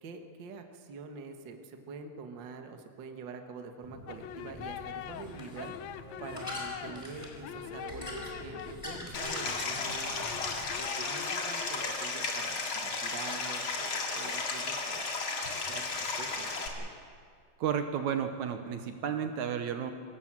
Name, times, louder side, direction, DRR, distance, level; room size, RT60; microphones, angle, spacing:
voice 1, 0.0-5.7 6.2-10.2 10.7-15.1 15.7-16.9, right 4 dB, 45° right, 5 dB, 1.7 m, -45 dB
sound 1, 3.8-10.7, left 1 dB, 10° left, 3.8 m, -45 dB
sound 2, 4.1-11.7, left 10 dB, 75° left, 1.7 m, -43 dB
Stream, 9.1-16.7, left 3 dB, 45° left, 2.7 m, -34 dB
voice 2, 17.6-19.9, right 8 dB, 70° right, 7 dB, 2.2 m, -32 dB
25.0 x 17.5 x 7.6 m, 2.2 s
omnidirectional pair, 3.7 m